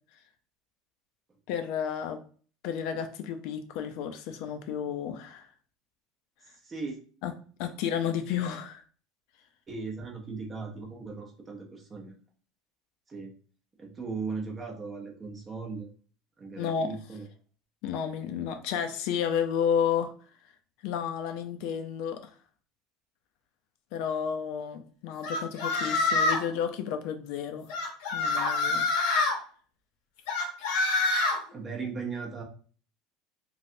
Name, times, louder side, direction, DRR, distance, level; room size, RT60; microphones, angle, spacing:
voice 1, 1.5-2.2 2.6-5.5 7.2-7.3 7.6-8.8 16.6-17.0 17.8-20.1 20.8-22.3 23.9-27.7 28.1-28.8, left 8 dB, 60° left, 8 dB, 0.4 m, -31 dB
voice 2, 6.6-7.0 9.7-12.1 13.1-13.3 13.8-15.9 16.4-17.3 31.5-32.4, right 4 dB, 20° right, 1 dB, 0.6 m, -37 dB
sound 1, 25.2-26.5 27.7-29.3 30.3-31.4, left 3 dB, 80° left, 0.8 m, -26 dB
3.2 x 2.6 x 2.6 m, 0.42 s
cardioid pair, 160°, 0 cm